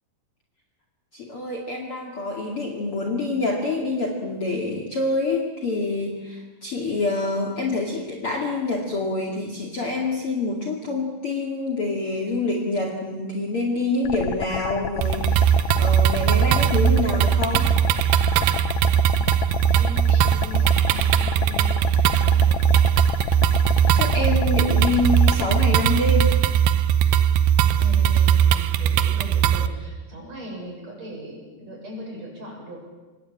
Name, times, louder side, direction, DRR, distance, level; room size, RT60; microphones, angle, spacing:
voice 1, 1.1-17.7 20.1-20.2 23.9-26.3, left 2 dB, 40° left, 1 dB, 2.7 m, -26 dB
sound 1, 14.0-25.6, left 9 dB, 90° left, 1.5 m, -31 dB
sound 2, 15.0-29.7, right 9 dB, 75° right, 2.5 m, -19 dB
voice 2, 19.7-22.7 27.6-32.9, equal, 40° right, -1 dB, 8.1 m, -39 dB
25.0 x 19.5 x 8.8 m, 1.2 s
omnidirectional pair, 4.6 m